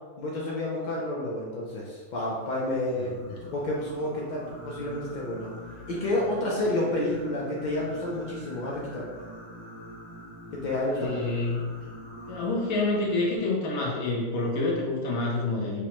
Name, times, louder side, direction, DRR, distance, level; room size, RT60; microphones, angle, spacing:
voice 1, 0.2-3.1 3.5-5.5 5.9-9.2 10.5-11.3, left 1 dB, 70° left, -4 dB, 0.4 m, -30 dB
Singing, 2.7-13.4, left 1 dB, 15° right, 0.4 m, -45 dB
voice 2, 3.0-3.3 10.9-11.7 12.3-15.9, left 2 dB, 90° left, -3 dB, 1.1 m, -28 dB
4.7 x 2.1 x 2.9 m, 1.4 s
omnidirectional pair, 1.4 m